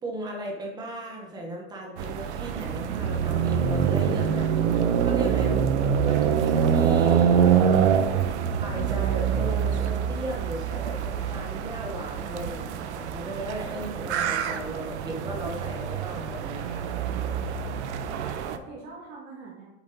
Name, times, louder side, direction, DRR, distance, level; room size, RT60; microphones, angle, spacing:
voice 1, 0.0-5.6 6.0-7.5 8.5-16.9, right 1 dB, 10° right, 0 dB, 1.0 m, -36 dB
sound 1, 2.0-18.6, right 8 dB, 80° right, 0.9 m, -25 dB
voice 2, 18.2-19.7, right 3 dB, 35° right, -4 dB, 2.2 m, -44 dB
8.0 x 7.2 x 4.0 m, 0.97 s
supercardioid pair, 180°, 34 cm